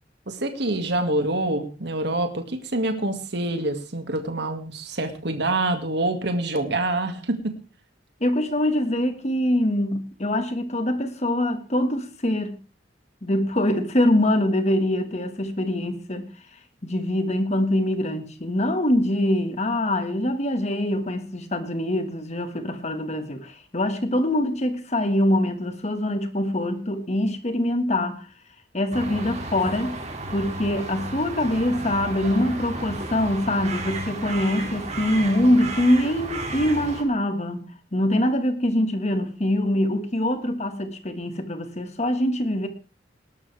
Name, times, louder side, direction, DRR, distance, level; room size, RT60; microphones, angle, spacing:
voice 1, 0.3-7.5, right 2 dB, 65° right, 2.2 m, -26 dB
voice 2, 8.2-12.6 13.2-16.3 16.8-28.3 28.7-30.0 30.3-42.7, left 1 dB, 35° left, 1.7 m, -24 dB
sound 1, 28.9-37.0, right 2 dB, 35° right, 2.6 m, -33 dB
19.0 x 12.0 x 3.5 m
head